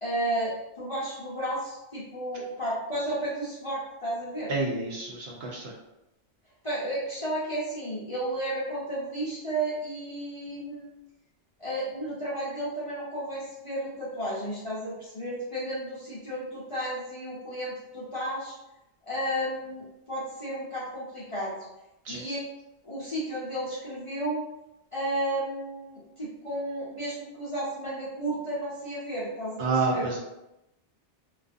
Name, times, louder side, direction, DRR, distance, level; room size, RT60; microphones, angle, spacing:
voice 1, 0.0-4.5 6.6-11.0 11.6-18.5 19.1-21.5 22.1-22.4 22.8-24.4 24.9-29.6 29.9-30.0, right 1 dB, 40° left, -8 dB, 0.5 m, -33 dB
voice 2, 4.5-5.7 22.0-22.3 29.6-30.2, right 3 dB, 65° right, -2 dB, 0.8 m, -29 dB
2.3 x 2.3 x 2.4 m, 0.92 s
omnidirectional pair, 1.2 m